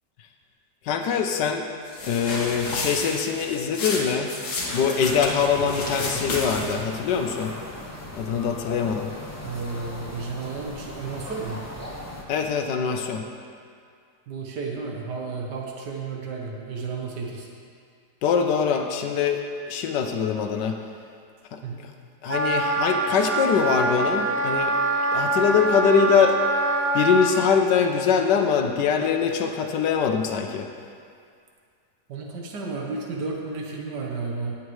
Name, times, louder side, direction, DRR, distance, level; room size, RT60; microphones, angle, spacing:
voice 1, 0.9-1.6 2.1-4.3 4.6-7.5 8.1-9.1 12.3-13.2 18.2-19.4 19.7-20.7 21.5-21.6 22.2-24.7 25.1-26.4 26.9-30.7, left 6 dB, 80° left, 4 dB, 1.3 m, -23 dB
sound 1, 1.9-6.9, left 2 dB, 65° left, 2.1 m, -31 dB
sound 2, 5.0-12.2, left 1 dB, 10° left, 0.8 m, -39 dB
voice 2, 9.4-11.6 14.3-17.5 21.6-21.8 32.1-34.6, right 4 dB, 80° right, -1 dB, 1.7 m, -32 dB
Wind instrument woodwind instrument, 22.3-27.5, right 2 dB, 60° right, 1.2 m, -24 dB
18.5 x 7.3 x 3.2 m, 2.3 s
omnidirectional pair, 1.8 m